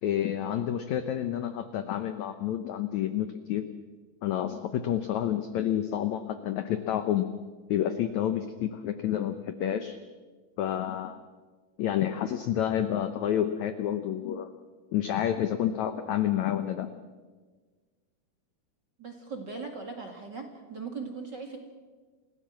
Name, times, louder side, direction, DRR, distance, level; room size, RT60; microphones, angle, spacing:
voice 1, 0.0-3.7 4.2-7.3 7.7-10.0 10.6-11.2 11.8-14.5 14.9-16.9, left 10 dB, 85° left, 9 dB, 1.6 m, -29 dB
voice 2, 19.0-21.6, right 4 dB, 35° right, 4 dB, 1.9 m, -39 dB
29.5 x 16.5 x 7.5 m, 1.4 s
omnidirectional pair, 4.6 m